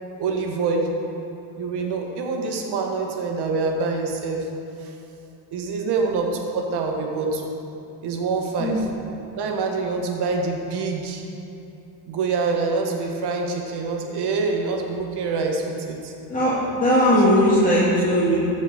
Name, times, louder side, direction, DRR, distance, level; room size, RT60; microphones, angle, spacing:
voice 1, 0.2-0.9 1.6-4.4 4.8-4.9 5.5-7.5 8.0-8.9 9.4-11.2 12.1-16.1 17.1-17.2, right 4 dB, 65° right, 2 dB, 1.6 m, -25 dB
voice 2, 8.6-8.9 16.3-18.3, equal, 20° left, -9 dB, 2.3 m, -19 dB
14.0 x 5.1 x 4.9 m, 3.0 s
supercardioid pair, 70°, 43 cm